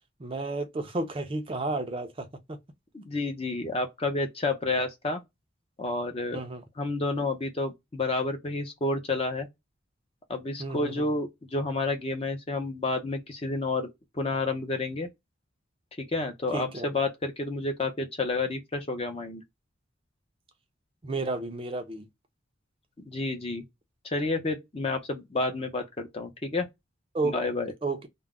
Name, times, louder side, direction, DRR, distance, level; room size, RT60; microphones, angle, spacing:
voice 1, 0.2-2.6 6.3-6.6 10.6-11.1 16.5-16.9 21.0-22.1 27.1-27.3 27.8-28.1, right 3 dB, 25° right, 0.4 m, -32 dB
voice 2, 2.9-5.2 5.8-6.4 6.8-9.5 10.3-15.1 16.0-19.4 23.1-23.6 24.0-26.7 27.2-27.7, left 2 dB, 30° left, 0.5 m, -30 dB
2.2 x 2.0 x 3.5 m
head